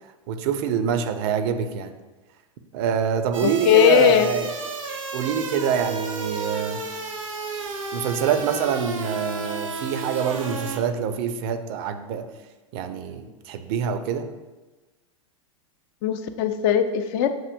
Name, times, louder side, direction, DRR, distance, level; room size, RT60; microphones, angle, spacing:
voice 1, 0.3-1.9 2.7-4.5 5.1-6.8 7.9-12.3 12.7-14.3, right 7 dB, 50° right, 9 dB, 0.4 m, -25 dB
sound 1, 3.3-10.8, right 3 dB, 85° right, 0.7 m, -32 dB
voice 2, 3.4-4.3 16.0-17.3, left 9 dB, 50° left, 9 dB, 0.4 m, -19 dB
7.5 x 2.6 x 2.5 m, 1.2 s
hypercardioid pair, 95°, 17 cm